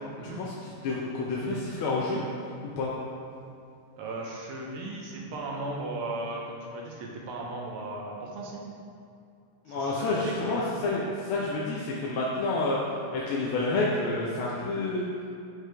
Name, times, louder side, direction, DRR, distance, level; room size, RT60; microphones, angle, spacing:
voice 1, 0.2-2.2 2.6-2.9 9.7-12.8 13.1-15.1, left 2 dB, 75° left, -4 dB, 1.4 m, -29 dB
voice 2, 4.0-8.6 9.7-10.5, right 2 dB, 80° right, -2 dB, 1.7 m, -36 dB
6.0 x 4.7 x 3.3 m, 2.5 s
omnidirectional pair, 2.4 m